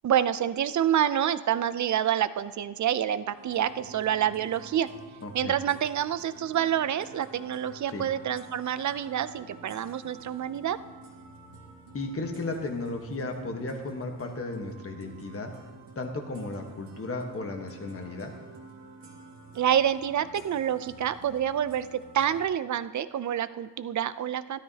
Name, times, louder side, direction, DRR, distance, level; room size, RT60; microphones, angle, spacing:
voice 1, 0.0-4.9 5.3-10.8 19.5-24.6, right 10 dB, 45° right, 15 dB, 0.5 m, -27 dB
sound 1, 3.3-22.5, right 3 dB, 70° right, 2.0 m, -49 dB
voice 2, 5.2-5.5 7.9-8.0 11.9-15.5 15.9-18.3, left 2 dB, 30° left, 3 dB, 1.3 m, -34 dB
13.0 x 12.5 x 2.9 m, 1.3 s
cardioid pair, 85°, 43 cm